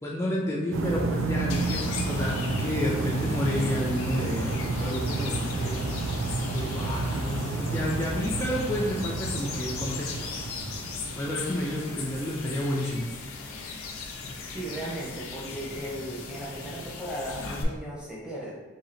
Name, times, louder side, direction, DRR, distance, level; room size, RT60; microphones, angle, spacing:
voice 1, 0.0-5.9 6.5-10.1 11.2-13.1, left 1 dB, 15° left, -4 dB, 0.4 m, -30 dB
sound 1, 0.7-11.5, right 3 dB, 70° right, 0.4 m, -30 dB
sound 2, 1.5-17.6, left 4 dB, 90° left, 0.5 m, -38 dB
voice 2, 14.5-18.5, right 1 dB, 5° right, -7 dB, 0.8 m, -36 dB
2.8 x 2.8 x 4.1 m, 1.4 s
head